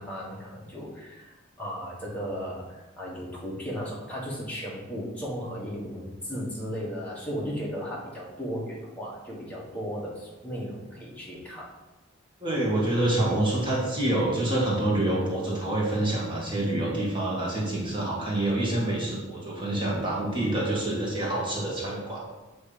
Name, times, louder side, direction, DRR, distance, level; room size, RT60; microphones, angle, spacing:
voice 1, 0.0-11.7, equal, 5° left, -6 dB, 1.6 m, -35 dB
voice 2, 12.4-22.2, right 1 dB, 25° right, -5 dB, 1.6 m, -27 dB
8.0 x 3.2 x 5.0 m, 1.1 s
head